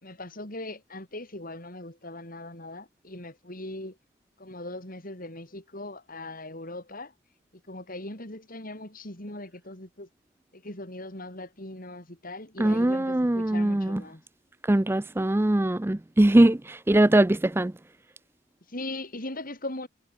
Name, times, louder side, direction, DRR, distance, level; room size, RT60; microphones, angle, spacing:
voice 1, 0.0-4.0 4.4-7.1 7.7-10.1 10.5-14.2 18.7-19.9, left 2 dB, 45° left, 4.6 m, -39 dB
voice 2, 12.6-14.0 14.6-17.7, right 1 dB, 10° right, 0.4 m, -21 dB
head